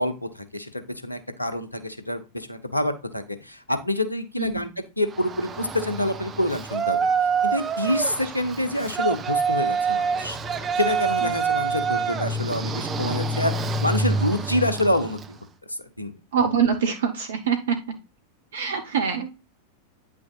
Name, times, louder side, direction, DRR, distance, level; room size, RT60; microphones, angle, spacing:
voice 1, 0.0-4.7 5.0-10.4 10.8-13.5 13.8-15.4 15.7-16.1, left 1 dB, 85° left, 10 dB, 1.0 m, -27 dB
Yell, 5.1-15.3, right 5 dB, 25° right, 0.8 m, -26 dB
voice 2, 16.3-17.8 18.5-19.3, right 7 dB, 65° right, 6 dB, 1.0 m, -24 dB
9.3 x 6.2 x 2.4 m, 0.28 s
figure-of-eight pair, 90°, 0 cm